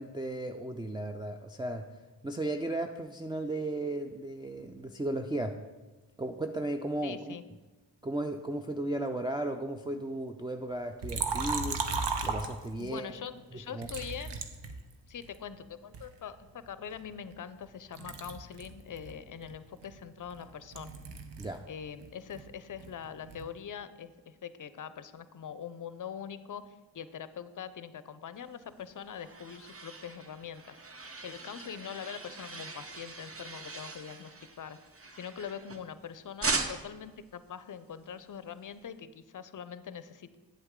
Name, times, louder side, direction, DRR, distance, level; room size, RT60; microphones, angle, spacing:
voice 1, 0.0-1.9 2.2-5.6 6.2-7.3 8.0-11.8 12.2-13.1 13.7-13.9 21.4-21.6, right 1 dB, 10° right, 5 dB, 0.4 m, -35 dB
voice 2, 7.0-7.4 12.8-14.4 15.1-21.0 21.7-31.0 31.2-34.8 35.1-40.4, left 8 dB, 45° left, 13 dB, 0.6 m, -43 dB
Liquid, 11.0-13.0 13.8-15.4 15.9-17.7 17.9-21.6 21.9-23.5, right 4 dB, 65° right, 0.9 m, -37 dB
sound 1, 28.7-36.0 36.4-37.1, right 3 dB, 30° right, 0.9 m, -39 dB
8.0 x 7.8 x 3.7 m, 1.2 s
cardioid pair, 45°, 46 cm